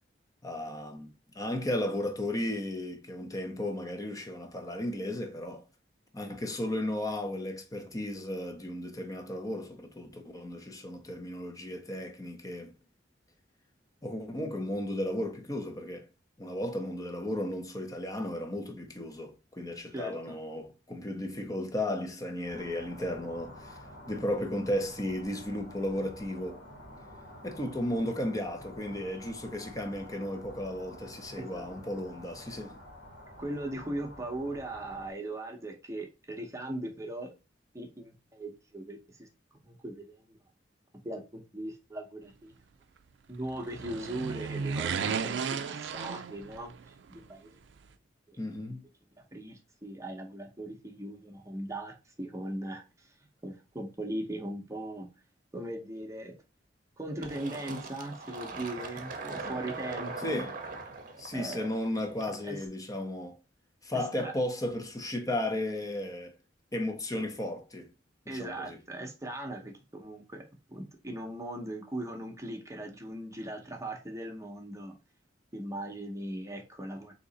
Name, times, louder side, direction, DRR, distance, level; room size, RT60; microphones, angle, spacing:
voice 1, 0.4-5.7 6.1-12.7 14.0-16.1 16.4-23.8 24.1-26.6 27.4-32.8 48.4-48.8 60.2-60.5 61.2-63.4 63.8-66.4 66.7-67.9 68.3-68.8, left 1 dB, 20° left, 0.7 m, -34 dB
voice 2, 19.9-20.4 31.4-31.8 33.4-37.3 37.7-40.4 41.0-42.5 43.3-47.6 48.3-48.4 48.7-48.8 49.2-53.1 53.4-55.1 55.5-56.3 57.0-60.5 61.3-61.7 62.4-62.6 63.9-64.3 68.3-70.4 70.7-75.0 75.5-77.1, right 1 dB, 15° right, 0.8 m, -39 dB
sound 1, 22.4-35.1, left 1 dB, 90° left, 1.6 m, -49 dB
sound 2, 43.4-46.9 47.1-47.2, right 6 dB, 75° right, 0.4 m, -34 dB
Fill (with liquid), 57.2-62.6, right 3 dB, 50° right, 0.8 m, -41 dB
3.8 x 2.9 x 3.9 m
head